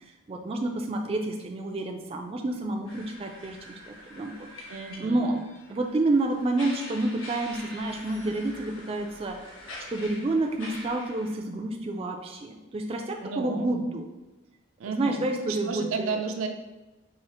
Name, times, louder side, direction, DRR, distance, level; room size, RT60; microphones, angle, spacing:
voice 1, 0.3-3.5 4.1-4.3 5.0-5.4 5.7-9.3 9.9-12.4 12.7-13.0 13.4-14.1 14.9-16.2, right 2 dB, 30° right, 2 dB, 0.3 m, -28 dB
sound 1, 2.9-11.4, left 1 dB, 75° left, 1.0 m, -45 dB
voice 2, 4.7-5.5 13.2-13.7 14.8-15.2 15.5-16.5, right 4 dB, 90° right, 5 dB, 0.5 m, -33 dB
4.9 x 2.4 x 4.2 m, 1.1 s
head